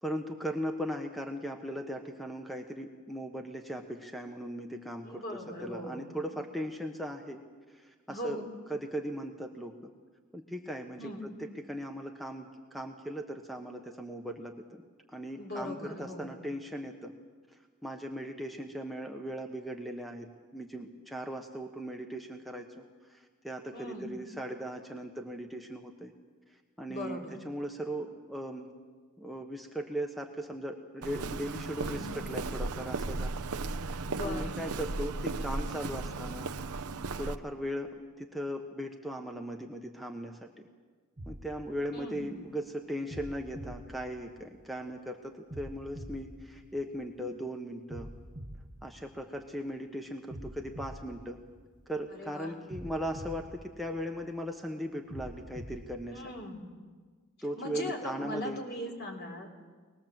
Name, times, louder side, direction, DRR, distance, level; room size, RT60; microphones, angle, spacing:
voice 1, 0.0-7.4 7.7-9.9 10.3-17.1 17.8-20.3 20.5-22.8 23.1-23.2 23.4-26.1 26.8-28.7 29.2-33.4 33.8-36.5 37.2-37.9 38.2-40.6 41.3-48.1 48.8-51.4 51.9-56.3 57.4-58.6, equal, ahead, 3 dB, 1.2 m, -38 dB
voice 2, 5.0-6.2 8.1-8.5 11.0-11.2 15.4-16.4 23.7-24.1 26.9-27.3 31.7-32.2 34.1-34.6 41.9-42.2 52.2-52.6 56.1-56.7 57.6-59.6, left 1 dB, 50° left, 2 dB, 3.7 m, -40 dB
Walk footsteps, 31.0-37.4, right 3 dB, 90° right, 0.8 m, -36 dB
sound 1, 41.2-42.5 43.1-44.8 45.5-47.3 47.9-49.7 50.3-52.1 52.7-54.4 55.1-56.5, right 1 dB, 35° right, 1.2 m, -46 dB
25.0 x 20.0 x 7.5 m, 1.5 s
head